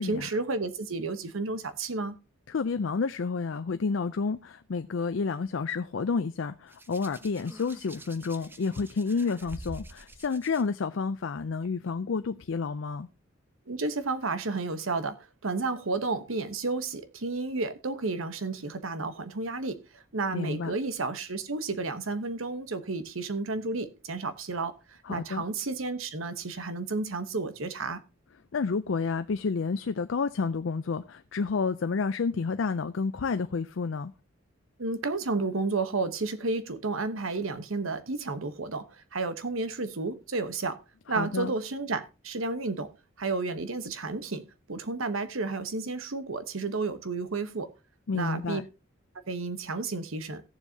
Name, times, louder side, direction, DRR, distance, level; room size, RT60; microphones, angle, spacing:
voice 1, 0.0-2.1 13.7-28.0 34.8-40.8 41.1-42.9 43.2-47.7 48.1-48.6 49.3-50.4, right 3 dB, 85° right, 1.0 m, -32 dB
voice 2, 2.5-13.1 20.3-20.7 25.0-25.4 28.5-34.1 41.1-41.5 48.1-48.7, left 4 dB, 70° left, 0.5 m, -30 dB
Hands, 6.7-10.6 11.7-11.9, right 1 dB, 10° right, 0.7 m, -46 dB
16.5 x 7.2 x 2.8 m
head